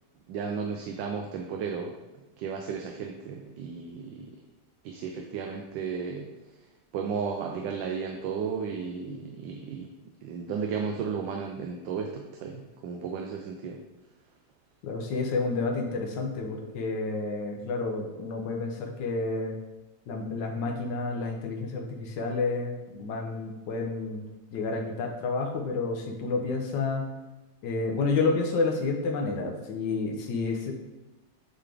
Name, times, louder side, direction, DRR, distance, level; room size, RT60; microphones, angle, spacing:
voice 1, 0.3-1.9 2.4-4.4 4.8-6.3 6.9-9.9 10.2-13.8, right 6 dB, 90° right, 2 dB, 1.3 m, -34 dB
voice 2, 14.8-19.6 20.1-24.2 24.5-27.1 27.6-30.7, left 3 dB, 80° left, 1 dB, 1.5 m, -30 dB
7.8 x 3.7 x 3.4 m, 1.1 s
omnidirectional pair, 1.9 m